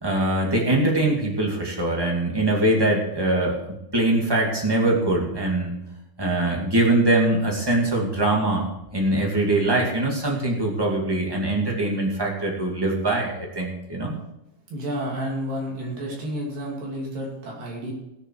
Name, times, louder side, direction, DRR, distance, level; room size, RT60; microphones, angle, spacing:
voice 1, 0.0-5.7 6.2-8.7 8.9-14.2, right 2 dB, 10° right, -1 dB, 1.2 m, -22 dB
voice 2, 14.7-17.9, equal, 65° right, -3 dB, 4.4 m, -30 dB
17.0 x 7.0 x 4.7 m, 0.88 s
omnidirectional pair, 4.3 m